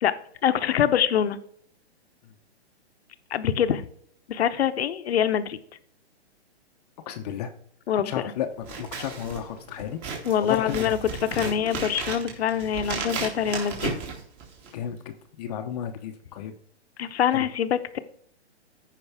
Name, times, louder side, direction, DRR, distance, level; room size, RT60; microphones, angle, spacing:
voice 1, 0.4-1.4 3.3-3.8 4.3-5.6 7.9-8.3 10.2-11.0 11.3-13.9 17.0-18.0, left 9 dB, 65° left, 11 dB, 0.9 m, -24 dB
voice 2, 7.1-7.5 8.0-10.0 10.4-10.9 11.4-11.5 14.7-16.5 17.3-17.5, left 9 dB, 35° left, 7 dB, 0.8 m, -33 dB
Scissors, 8.6-14.8, right 4 dB, 30° right, 2.6 m, -34 dB
14.5 x 5.4 x 3.5 m, 0.64 s
hypercardioid pair, 140°, 34 cm